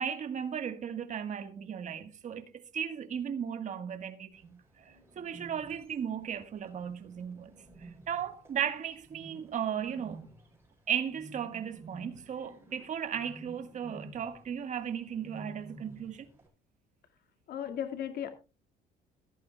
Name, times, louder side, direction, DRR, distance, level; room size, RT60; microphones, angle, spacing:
voice 1, 0.0-7.5 7.8-10.3 10.9-16.3, right 8 dB, 45° right, 1.5 m, -36 dB
Bird, 4.3-16.5, right 1 dB, 15° right, 6.3 m, -53 dB
voice 2, 17.5-18.3, left 9 dB, 70° left, 2.1 m, -35 dB
16.5 x 14.0 x 2.3 m
cardioid pair, 110°, 17 cm